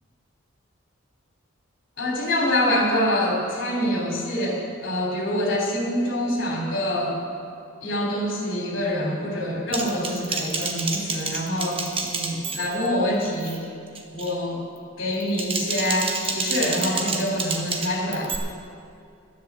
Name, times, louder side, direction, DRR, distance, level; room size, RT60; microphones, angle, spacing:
voice 1, 2.0-7.2 7.8-13.6 14.1-14.6 15.0-18.3, left 1 dB, 60° left, -1 dB, 3.3 m, -25 dB
Typing, 9.7-12.9 13.2-13.6 14.0-14.3 15.1-18.4, right 4 dB, 25° right, 1.1 m, -29 dB
11.0 x 10.0 x 7.5 m, 2.4 s
head